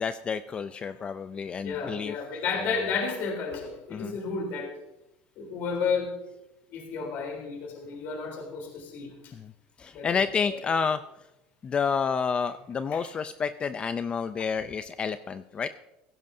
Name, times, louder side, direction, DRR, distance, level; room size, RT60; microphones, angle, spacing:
voice 1, 0.0-2.1 2.6-2.9 3.9-4.2 9.3-9.5 9.8-11.0 11.6-15.7, left 6 dB, 25° left, 11 dB, 0.5 m, -29 dB
voice 2, 1.6-4.7 5.4-6.1 6.7-9.1 9.9-10.6 12.9-13.0, left 5 dB, 55° left, 1 dB, 3.7 m, -32 dB
16.5 x 15.5 x 2.7 m, 0.91 s
cardioid pair, 135°, 4 cm